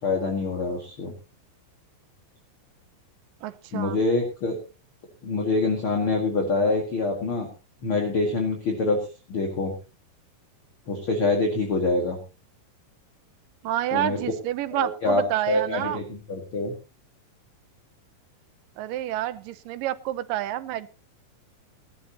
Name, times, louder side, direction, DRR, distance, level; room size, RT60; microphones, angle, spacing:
voice 1, 0.0-1.1 3.7-4.6 5.2-7.5 7.8-9.0 9.3-9.7 10.9-12.2 13.9-14.2 14.7-16.7, left 3 dB, 40° left, 2 dB, 2.6 m, -25 dB
voice 2, 3.4-4.0 13.6-16.0 18.8-20.9, right 13 dB, 80° right, 13 dB, 2.5 m, -29 dB
19.0 x 12.5 x 2.9 m, 0.32 s
omnidirectional pair, 3.9 m